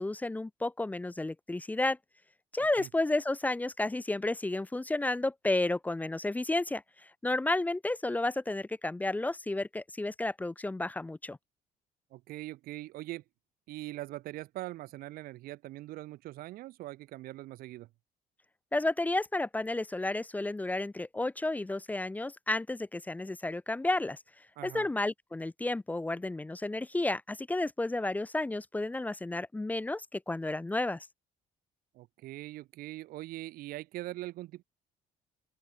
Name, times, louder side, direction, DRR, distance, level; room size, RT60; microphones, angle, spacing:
voice 1, 0.0-2.0 2.5-6.8 7.2-11.4 18.7-24.2 24.6-31.1, left 2 dB, 10° left, 0.4 m, -32 dB
voice 2, 2.6-2.9 12.1-13.2 13.7-17.9 24.6-24.9 31.9-34.6, right 17 dB, 75° right, 0.8 m, -42 dB
open air
supercardioid pair, 85°, 15 cm